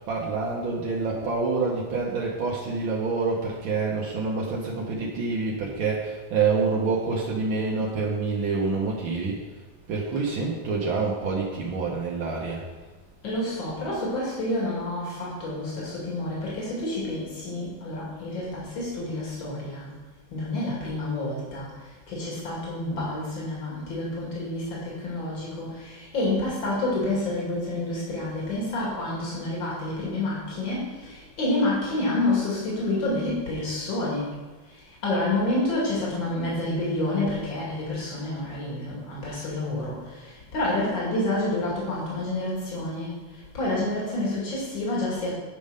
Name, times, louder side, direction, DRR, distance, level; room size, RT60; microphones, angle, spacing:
voice 1, 0.1-9.4 9.9-12.6, right 4 dB, 85° right, -3 dB, 1.9 m, -27 dB
voice 2, 13.2-19.9 20.3-34.3 34.6-45.3, left 2 dB, 75° left, -5 dB, 3.1 m, -29 dB
9.8 x 5.5 x 5.1 m, 1.3 s
omnidirectional pair, 2.1 m